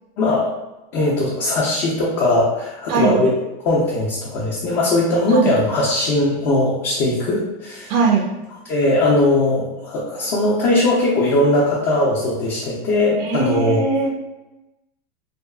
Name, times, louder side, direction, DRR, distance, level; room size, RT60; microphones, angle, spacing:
voice 1, 0.2-0.5 0.9-3.4 3.6-7.9 8.7-13.9, left 2 dB, 35° left, -5 dB, 0.5 m, -19 dB
voice 2, 2.9-3.2 5.3-5.5 7.9-8.2 13.2-14.1, right 5 dB, 45° right, 1 dB, 0.4 m, -20 dB
2.7 x 2.3 x 2.2 m, 1.0 s
supercardioid pair, 150°, 30 cm